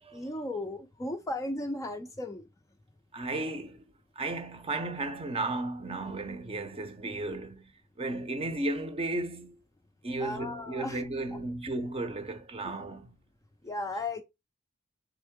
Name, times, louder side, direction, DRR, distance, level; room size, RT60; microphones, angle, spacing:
voice 1, 0.1-2.5 10.2-11.0 11.3-11.4 12.6-12.7 13.6-14.2, left 2 dB, 15° left, 0.4 m, -36 dB
voice 2, 3.1-7.7 8.0-9.6 10.0-13.1, right 2 dB, 30° right, 0.6 m, -34 dB
3.7 x 3.5 x 3.5 m
head